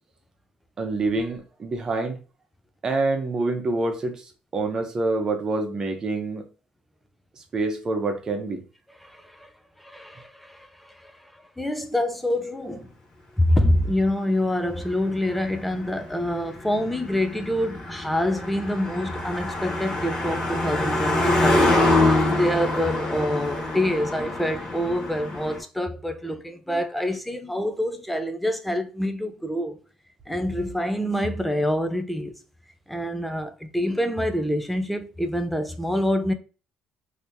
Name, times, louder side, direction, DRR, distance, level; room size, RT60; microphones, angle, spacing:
voice 1, 0.8-2.2 2.8-4.2 4.5-6.5 7.5-8.6, right 3 dB, 30° right, 0.8 m, -26 dB
voice 2, 9.0-9.5 9.8-12.9 13.4-21.7 22.3-29.8 30.3-32.4 32.9-36.3, left 1 dB, ahead, 0.4 m, -26 dB
Car passing by, 14.4-25.6, left 2 dB, 30° left, 1.3 m, -25 dB
2.8 x 2.8 x 3.4 m
cardioid pair, 150°, 2 cm